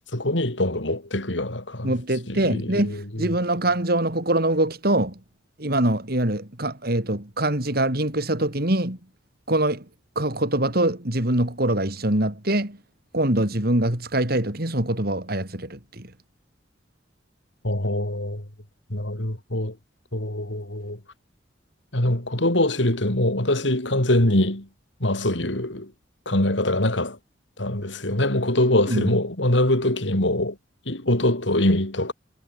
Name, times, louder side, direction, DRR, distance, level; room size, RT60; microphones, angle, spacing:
voice 1, 0.1-1.9 2.3-3.3 17.6-18.5 18.9-19.8 20.1-21.0 21.9-24.7 25.0-25.9 26.3-27.2 27.6-30.6 30.9-32.1, left 1 dB, 80° left, 4.4 m, -23 dB
voice 2, 1.8-5.1 5.6-9.0 9.5-9.8 10.2-12.8 13.1-16.1 28.9-29.0, right 1 dB, 55° right, 4.5 m, -23 dB
head